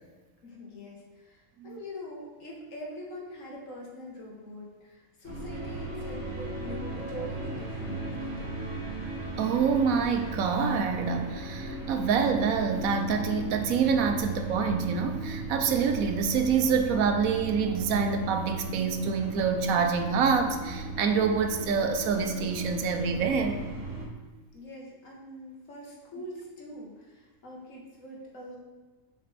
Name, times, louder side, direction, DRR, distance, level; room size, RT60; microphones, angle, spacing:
voice 1, 0.4-8.8 24.5-28.6, left 1 dB, 70° left, -2 dB, 1.7 m, -43 dB
sound 1, 5.2-24.1, right 3 dB, 60° right, 1.4 m, -37 dB
sound 2, 5.5-16.9, equal, 20° right, 1.9 m, -44 dB
voice 2, 9.4-23.6, right 5 dB, 85° right, 6 dB, 1.1 m, -26 dB
7.4 x 5.0 x 3.3 m, 1.3 s
omnidirectional pair, 1.4 m